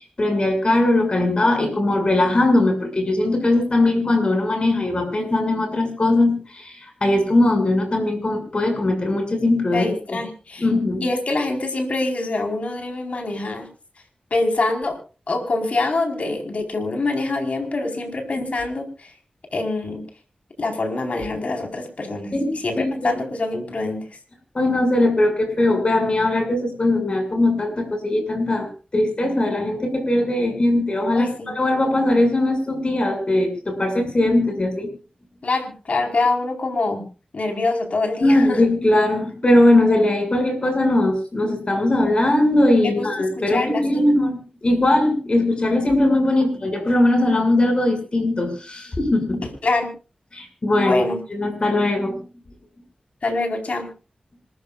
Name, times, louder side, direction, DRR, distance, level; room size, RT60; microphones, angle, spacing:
voice 1, 0.2-10.2 10.6-11.1 18.3-18.5 22.3-23.1 24.5-28.7 28.9-34.9 38.2-49.5 50.3-52.2, left 1 dB, 40° left, 5 dB, 6.6 m, -20 dB
voice 2, 9.7-10.6 11.0-13.6 14.3-15.0 15.3-19.1 19.5-20.0 20.6-24.0 31.1-31.5 35.4-37.0 37.3-38.6 42.8-43.1 43.5-44.0 49.6-49.9 50.7-51.2 53.2-53.9, left 2 dB, 65° left, 3 dB, 4.6 m, -25 dB
26.5 x 14.5 x 2.5 m, 0.34 s
wide cardioid pair, 70°, 3 cm